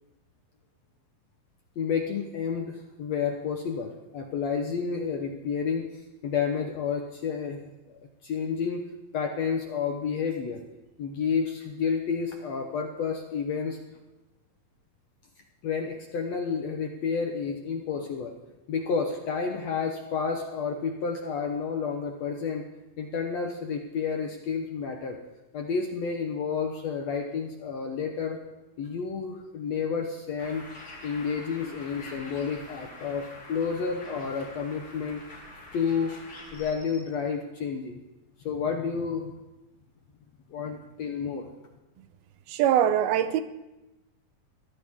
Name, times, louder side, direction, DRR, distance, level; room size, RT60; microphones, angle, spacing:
voice 1, 1.8-5.9 6.2-8.8 9.1-10.6 11.0-13.8 15.6-18.4 18.7-22.6 23.0-25.2 25.5-28.4 28.8-30.7 31.0-35.2 35.7-36.1 36.5-38.0 38.4-39.3 40.5-41.5, left 6 dB, 65° left, 3 dB, 1.8 m, -30 dB
Bird, 30.4-36.7, left 2 dB, 35° left, 3.5 m, -46 dB
voice 2, 42.5-43.4, right 10 dB, 85° right, 11 dB, 2.8 m, -22 dB
22.5 x 17.0 x 3.7 m, 1.0 s
omnidirectional pair, 4.3 m